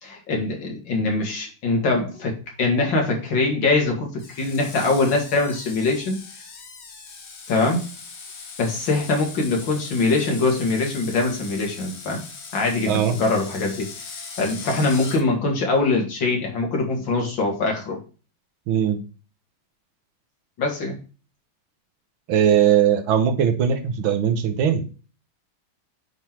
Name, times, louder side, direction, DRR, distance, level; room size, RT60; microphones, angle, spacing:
voice 1, 0.0-6.2 7.5-7.8 8.6-12.2 12.5-13.9 14.4-18.0 20.6-21.0, left 3 dB, 70° left, 1 dB, 2.8 m, -23 dB
Screech, 4.2-15.2, left 4 dB, 40° left, 1.1 m, -40 dB
voice 2, 18.7-19.0 22.3-24.8, right 8 dB, 80° right, 8 dB, 1.8 m, -19 dB
8.9 x 3.9 x 4.5 m, 0.35 s
omnidirectional pair, 2.2 m